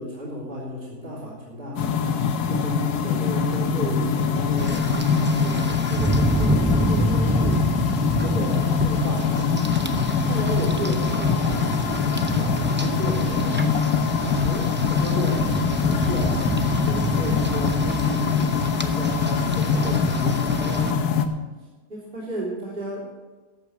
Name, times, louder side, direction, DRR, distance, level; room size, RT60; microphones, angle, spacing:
voice 1, 0.0-2.0 2.5-7.6 8.2-9.6 10.2-13.7 14.4-16.6 16.9-21.0 21.9-23.0, right 1 dB, 35° right, -7 dB, 3.6 m, -33 dB
sound 1, 1.8-21.3, left 6 dB, 90° left, 1.4 m, -23 dB
Rain, 4.6-20.9, right 2 dB, 20° right, 0.3 m, -28 dB
14.0 x 8.7 x 6.2 m, 1.3 s
omnidirectional pair, 1.6 m